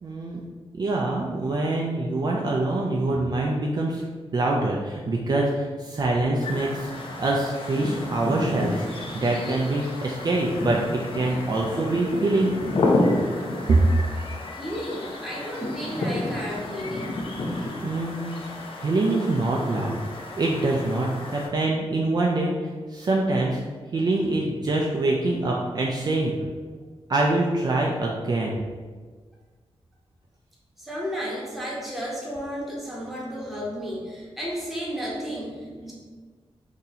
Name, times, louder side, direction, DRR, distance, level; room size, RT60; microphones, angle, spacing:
voice 1, 0.0-0.4 0.8-4.0 4.3-6.9 7.2-12.6 13.7-13.8 17.6-18.3 18.8-20.0 20.4-23.6 23.9-26.3 27.1-28.6, right 2 dB, 40° right, -2 dB, 0.3 m, -25 dB
sound 1, 6.4-21.5, left 2 dB, 55° left, 0.5 m, -30 dB
voice 2, 14.5-17.2 30.8-35.9, equal, ahead, -5 dB, 0.8 m, -33 dB
2.7 x 2.7 x 3.9 m, 1.5 s
wide cardioid pair, 150°, 11 cm